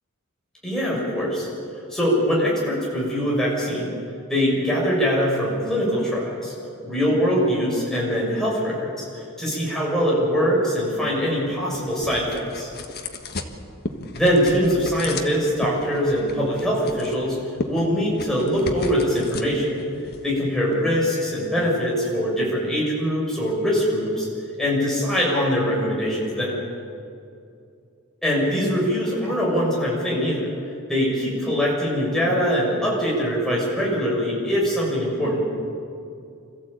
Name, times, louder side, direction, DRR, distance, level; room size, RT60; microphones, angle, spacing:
voice 1, 0.6-1.5 1.9-4.0 4.3-6.5 6.8-12.7 14.1-17.4 17.7-19.7 20.2-24.3 24.6-26.5 28.2-30.5 30.9-35.4, equal, ahead, -5 dB, 6.5 m, -22 dB
sound 1, 10.9-21.1, left 2 dB, 45° left, 1.5 m, -36 dB
26.0 x 15.0 x 8.7 m, 2.5 s
head